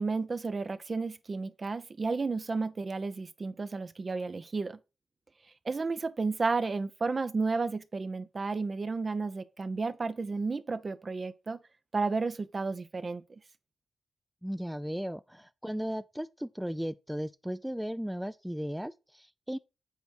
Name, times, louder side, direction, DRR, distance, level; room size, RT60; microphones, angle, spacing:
voice 1, 0.0-4.8 5.6-11.6 11.9-13.2, right 4 dB, 45° right, 0.8 m, -32 dB
voice 2, 14.4-19.6, equal, 5° right, 0.4 m, -36 dB
8.2 x 4.6 x 4.3 m
supercardioid pair, 45°, 0 cm